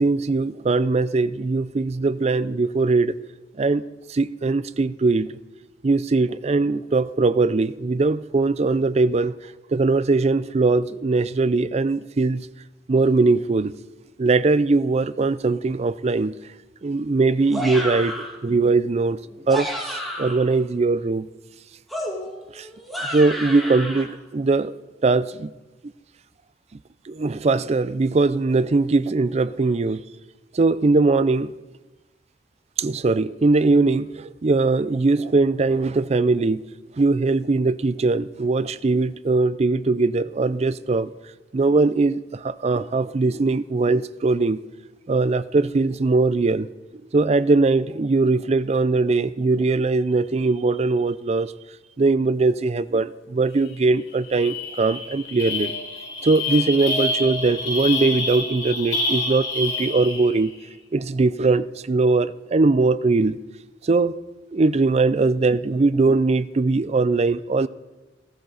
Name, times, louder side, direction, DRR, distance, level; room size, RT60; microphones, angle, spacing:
voice 1, 0.0-3.1 3.6-3.8 4.1-5.4 5.8-9.4 9.7-12.5 12.9-13.7 14.2-16.4 16.8-19.2 19.5-21.3 22.5-22.7 23.1-24.7 25.0-25.5 27.1-30.0 30.5-31.5 32.8-36.7 37.0-41.1 41.5-44.6 45.1-46.7 47.1-51.5 52.0-55.7 56.2-60.5 60.9-63.4 63.8-64.1 64.5-67.7, right 3 dB, 35° right, 0.4 m, -21 dB
sound 1, 17.5-18.4 19.3-20.5 21.9-24.0, equal, ahead, 2.8 m, -31 dB
sound 2, 53.6-53.8 54.1-60.5, left 2 dB, 70° left, 3.5 m, -28 dB
16.0 x 15.0 x 3.9 m
head